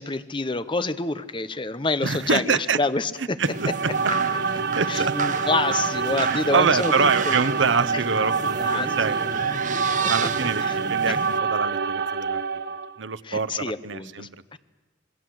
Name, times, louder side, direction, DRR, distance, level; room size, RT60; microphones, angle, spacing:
voice 1, 0.0-3.4 4.9-7.4 8.3-9.3 10.6-10.8 11.1-11.2 13.2-14.6, left 3 dB, 25° left, 13 dB, 0.9 m, -28 dB
voice 2, 2.0-2.8 3.2-3.9 4.4-5.2 6.2-9.4 10.1-12.4 13.0-14.6, right 5 dB, 80° right, 13 dB, 0.9 m, -26 dB
sound 1, 3.4-11.4, right 4 dB, 40° right, 1.2 m, -32 dB
sound 2, 3.5-13.0, right 5 dB, 55° right, 0.9 m, -26 dB
26.5 x 21.0 x 7.8 m, 1.2 s
head